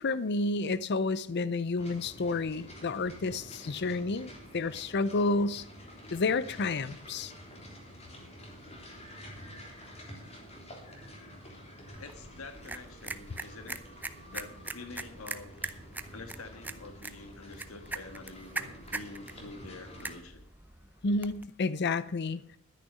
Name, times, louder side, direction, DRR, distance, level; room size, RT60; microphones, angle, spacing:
voice 1, 0.0-5.6 6.1-7.3 21.0-22.6, left 3 dB, 55° left, 16 dB, 0.6 m, -30 dB
sound 1, 1.8-20.2, equal, 30° left, 3.5 m, -49 dB
sound 2, 11.9-21.5, right 2 dB, 10° right, 0.7 m, -42 dB
voice 2, 12.0-13.8 14.3-15.5 16.1-20.5, left 3 dB, 80° left, 7 dB, 1.6 m, -47 dB
11.5 x 10.0 x 5.4 m, 0.65 s
head